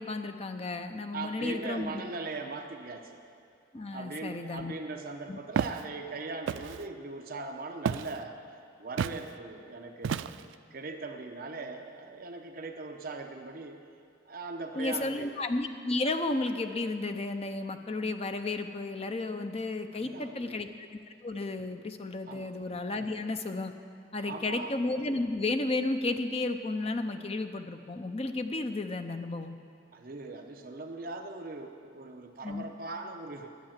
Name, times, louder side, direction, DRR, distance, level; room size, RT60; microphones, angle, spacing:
voice 1, 0.0-2.0 3.7-4.7 5.3-5.4 14.8-20.9 21.2-23.7 24.1-29.6 32.4-32.6, left 2 dB, 30° left, 7 dB, 0.6 m, -33 dB
voice 2, 1.1-3.2 3.9-8.4 8.8-13.8 14.3-15.3 19.9-20.6 22.3-22.5 24.2-24.7 29.9-33.5, right 3 dB, 50° right, 4 dB, 0.8 m, -40 dB
Walk footsteps, 5.5-5.8 6.5-6.8 7.9-8.2 9.0-9.2 10.0-10.5, right 7 dB, 80° right, 0.3 m, -31 dB
11.5 x 8.5 x 7.4 m, 2.4 s
head